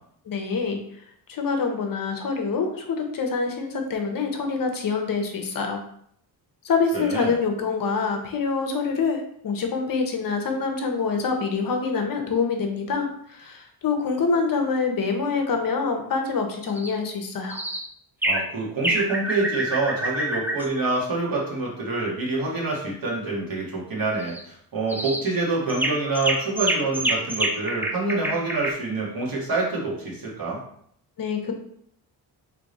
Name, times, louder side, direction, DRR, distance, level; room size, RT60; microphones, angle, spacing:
voice 1, 0.3-0.8 1.3-5.8 6.6-17.6 31.2-31.5, left 4 dB, 55° left, 4 dB, 0.8 m, -26 dB
voice 2, 6.9-7.4 18.2-30.6, right 3 dB, 55° right, -4 dB, 1.7 m, -26 dB
sound 1, 16.7-16.9 17.5-17.9 18.2-18.5 18.8-20.7 24.2-24.4 24.9-25.3 25.7-28.7, right 1 dB, 5° right, 0.4 m, -27 dB
3.4 x 3.4 x 4.0 m, 0.67 s
cardioid pair, 125°, 40 cm